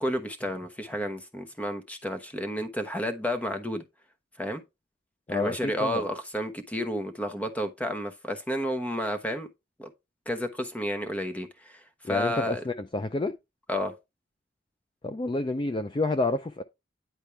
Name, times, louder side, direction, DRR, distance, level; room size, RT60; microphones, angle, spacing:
voice 1, 0.0-3.8 4.4-4.6 5.3-9.5 9.8-9.9 10.3-12.6 13.7-13.9, equal, 10° left, 1.0 m, -31 dB
voice 2, 5.3-6.0 12.0-13.3 15.0-16.6, left 2 dB, 25° left, 0.4 m, -29 dB
9.9 x 4.4 x 3.3 m
head